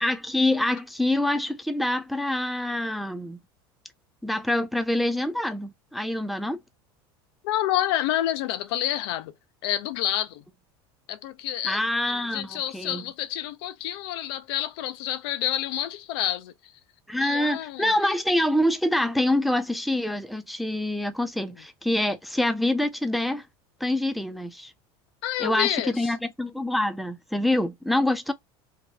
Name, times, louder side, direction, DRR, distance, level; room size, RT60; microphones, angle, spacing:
voice 1, 0.0-3.4 4.2-6.6 11.6-13.0 17.1-23.5 23.8-24.7 25.4-28.3, left 1 dB, ahead, 0.4 m, -26 dB
voice 2, 7.4-9.3 9.6-10.4 11.1-11.8 12.1-16.7 17.2-18.1 25.2-26.1, left 13 dB, 75° left, 0.5 m, -29 dB
2.8 x 2.2 x 3.8 m
supercardioid pair, 110°, 13 cm